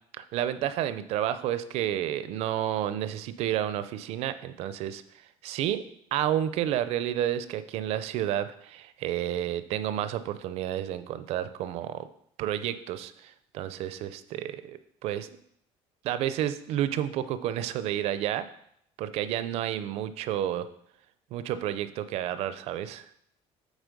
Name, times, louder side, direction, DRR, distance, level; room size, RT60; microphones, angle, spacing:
voice 1, 0.2-5.0 5.4-5.8 6.1-12.1 12.4-15.4 16.0-18.4 19.0-20.7 21.3-23.0, right 11 dB, 60° right, 13 dB, 0.5 m, -30 dB
8.1 x 4.1 x 5.2 m, 0.71 s
cardioid pair, 175°, 12 cm